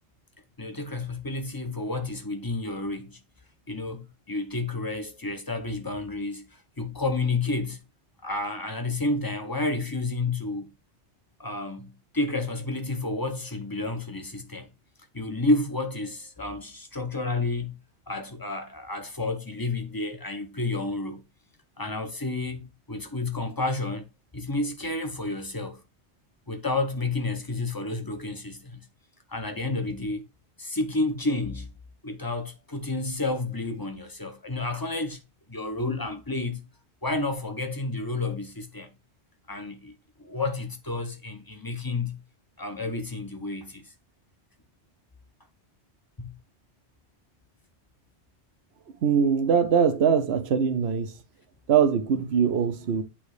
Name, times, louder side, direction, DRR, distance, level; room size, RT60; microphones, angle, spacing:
voice 1, 0.6-3.2 3.7-7.8 8.2-10.7 11.4-14.7 15.1-17.8 18.1-21.2 21.8-24.1 24.3-25.8 26.5-28.9 29.3-30.2 30.6-31.7 32.0-35.2 35.5-36.6 37.0-38.9 39.5-39.9 40.2-42.2 42.6-43.9 46.2-46.3, left 2 dB, 20° left, 0.8 m, -30 dB
voice 2, 49.0-51.2 51.7-53.0, right 7 dB, 70° right, 1.0 m, -22 dB
8.6 x 3.1 x 4.8 m
omnidirectional pair, 1.2 m